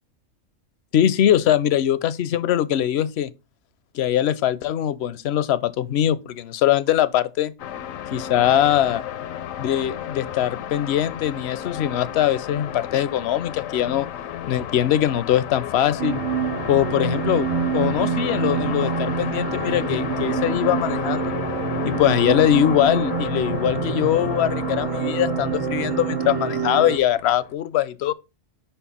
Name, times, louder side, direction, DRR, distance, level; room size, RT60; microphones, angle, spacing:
voice 1, 0.9-3.3 3.9-7.5 8.1-9.0 9.6-14.1 14.5-16.2 16.7-17.5 17.7-21.3 21.8-28.1, left 11 dB, 65° left, 0.7 m, -22 dB
sound 1, 7.6-27.5, left 10 dB, 85° left, 1.0 m, -32 dB
sound 2, 16.0-27.0, right 7 dB, 50° right, 0.4 m, -26 dB
5.5 x 4.5 x 5.5 m
omnidirectional pair, 1.4 m